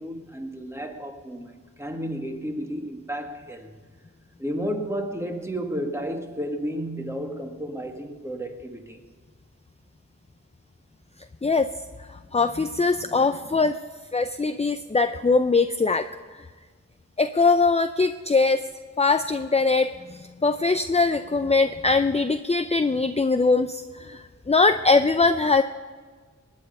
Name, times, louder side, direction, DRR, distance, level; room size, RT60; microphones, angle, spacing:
voice 1, 0.0-3.7 4.4-9.0, equal, 10° right, 1.9 m, -32 dB
voice 2, 12.3-13.8 14.1-16.0 17.2-18.6 19.0-25.6, left 3 dB, 20° left, 0.5 m, -21 dB
20.0 x 9.2 x 5.5 m
wide cardioid pair, 45°, 29 cm